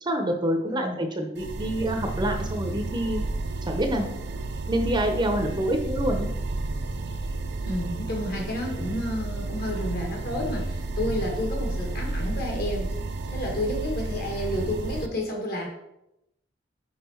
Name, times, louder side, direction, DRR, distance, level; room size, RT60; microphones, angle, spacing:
voice 1, 0.0-3.2 3.7-4.1 4.7-6.3, right 1 dB, 25° right, 4 dB, 0.7 m, -27 dB
voice 2, 0.7-1.0 7.6-12.9 13.3-15.7, left 1 dB, 55° left, 0 dB, 1.7 m, -30 dB
sound 1, 1.4-15.1, right 2 dB, 60° right, 0.5 m, -31 dB
5.5 x 4.8 x 4.3 m, 0.84 s
head